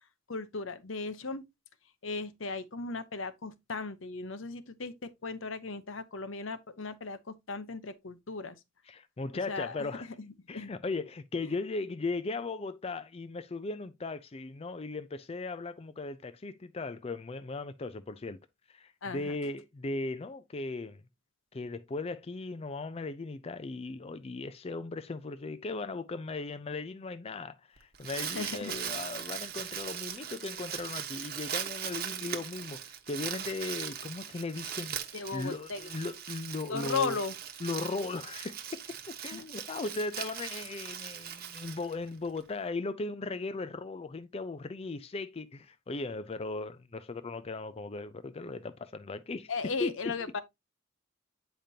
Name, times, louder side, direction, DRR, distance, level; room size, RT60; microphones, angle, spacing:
voice 1, 0.3-1.4 2.0-8.6 9.5-10.7 19.0-19.4 28.3-28.7 35.1-35.9 36.7-37.4 39.3-39.4 49.5-50.4, left 4 dB, 70° left, 0.9 m, -37 dB
voice 2, 8.9-10.1 10.5-18.4 18.7-21.0 21.5-37.2 37.6-49.5 49.8-49.9, left 3 dB, 30° left, 0.4 m, -37 dB
Crumpling crinkling, 27.8-42.4, right 9 dB, 50° right, 1.1 m, -40 dB
9.0 x 5.1 x 2.8 m
head